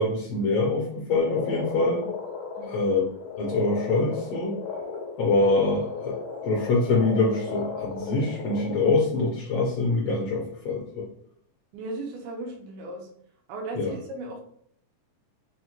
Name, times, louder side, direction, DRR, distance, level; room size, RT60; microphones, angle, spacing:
voice 1, 0.0-2.1 2.7-3.1 3.4-4.6 5.2-6.2 6.4-11.1 13.7-13.9, left 2 dB, 75° left, -2 dB, 1.5 m, -24 dB
Frog, 1.2-8.9, left 6 dB, 90° left, 2.1 m, -35 dB
voice 2, 2.6-2.9 11.7-13.1 13.5-14.4, right 2 dB, 85° right, 1 dB, 2.2 m, -36 dB
5.4 x 2.1 x 2.9 m, 0.66 s
omnidirectional pair, 3.5 m